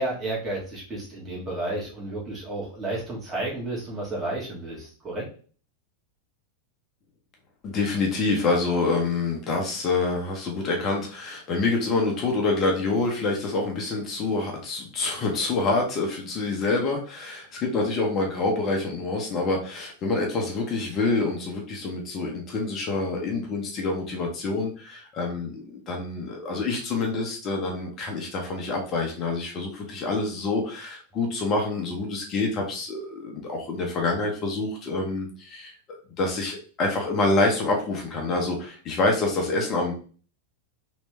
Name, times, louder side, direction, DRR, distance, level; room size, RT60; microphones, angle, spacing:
voice 1, 0.0-5.3, right 2 dB, 20° right, -5 dB, 1.6 m, -31 dB
voice 2, 7.6-35.7 36.2-39.9, left 3 dB, 30° left, 0 dB, 1.0 m, -27 dB
3.2 x 3.2 x 3.2 m, 0.40 s
figure-of-eight pair, 90°, 0 cm